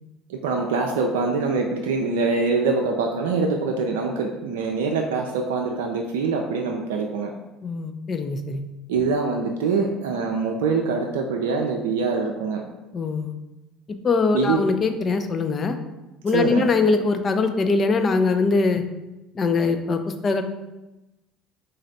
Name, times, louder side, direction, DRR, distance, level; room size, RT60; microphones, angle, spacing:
voice 1, 0.3-7.3 8.9-12.6 14.3-14.6 16.3-16.7, right 4 dB, 80° right, 1 dB, 0.4 m, -24 dB
voice 2, 7.6-8.6 12.9-13.4 14.0-15.8 16.2-18.8 19.3-20.4, left 4 dB, 40° left, 7 dB, 0.6 m, -22 dB
4.0 x 3.2 x 4.0 m, 1.0 s
hypercardioid pair, 70°, 0 cm